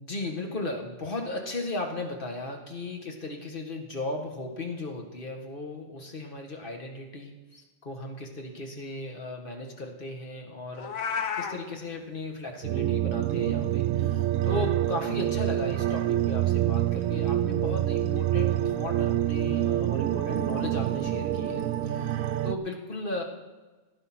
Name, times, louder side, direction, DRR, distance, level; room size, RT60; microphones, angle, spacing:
voice 1, 0.0-23.2, left 2 dB, 40° left, 2 dB, 1.8 m, -36 dB
Meow, 10.7-11.6, left 7 dB, 80° left, 1.4 m, -31 dB
sound 1, 12.6-22.6, right 12 dB, 75° right, 1.0 m, -26 dB
14.0 x 9.9 x 6.1 m, 1.3 s
omnidirectional pair, 1.4 m